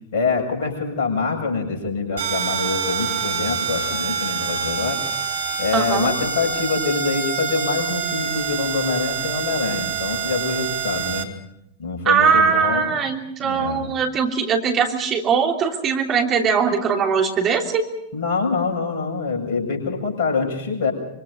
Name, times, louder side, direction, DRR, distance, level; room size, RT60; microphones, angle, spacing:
voice 1, 0.1-5.0 5.6-11.3 11.8-13.0 13.4-13.9 18.1-20.9, left 4 dB, 50° left, 3 dB, 7.4 m, -25 dB
sound 1, 2.2-11.2, right 7 dB, 65° right, 2.5 m, -26 dB
voice 2, 5.7-6.2 12.0-17.9, right 6 dB, 30° right, 1 dB, 3.1 m, -20 dB
25.5 x 25.5 x 5.2 m, 0.81 s
figure-of-eight pair, 90°, 0 cm